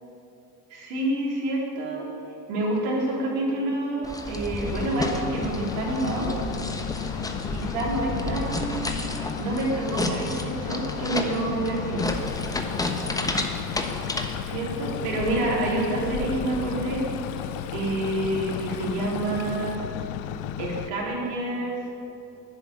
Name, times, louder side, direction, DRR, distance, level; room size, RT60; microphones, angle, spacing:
voice 1, 0.7-2.0 2.5-6.4 7.5-9.1 9.4-12.1 14.4-17.1 17.7-19.8 20.6-21.8, right 2 dB, 55° right, -3 dB, 3.8 m, -28 dB
sound 1, 4.0-14.3, left 1 dB, 5° left, 1.1 m, -31 dB
sound 2, 4.6-20.9, left 11 dB, 40° left, 0.6 m, -34 dB
Stream, 12.1-19.8, left 6 dB, 60° left, 1.1 m, -41 dB
11.5 x 8.0 x 9.2 m, 2.7 s
figure-of-eight pair, 70°, 48 cm